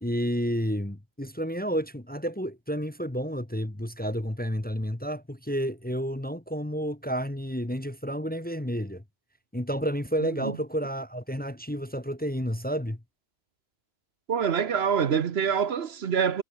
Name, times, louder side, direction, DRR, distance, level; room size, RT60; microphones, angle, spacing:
voice 1, 0.0-9.0 9.5-13.0, equal, 10° left, 1.0 m, -30 dB
voice 2, 14.3-16.4, right 7 dB, 65° right, 1.1 m, -25 dB
omnidirectional pair, 1.2 m